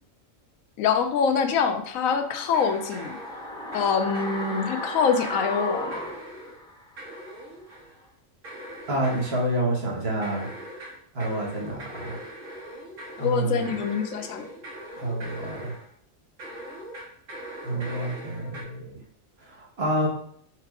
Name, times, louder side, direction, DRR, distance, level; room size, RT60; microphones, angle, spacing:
voice 1, 0.8-3.2 3.7-5.9 13.2-14.4, left 6 dB, 80° left, 7 dB, 1.0 m, -25 dB
sound 1, 1.9-7.1 7.4-7.5, left 1 dB, 5° left, 0.4 m, -35 dB
sound 2, 2.5-3.9 4.1-4.9 5.2-6.6 7.0-8.0 8.4-9.6 10.2-15.9 16.4-18.6, equal, 70° right, 1.8 m, -41 dB
voice 2, 8.9-10.5 11.1-12.2 13.2-13.7 15.0-15.7 17.6-19.0 19.6-20.1, right 1 dB, 50° right, -3 dB, 1.4 m, -28 dB
4.5 x 2.5 x 4.6 m, 0.64 s
omnidirectional pair, 1.4 m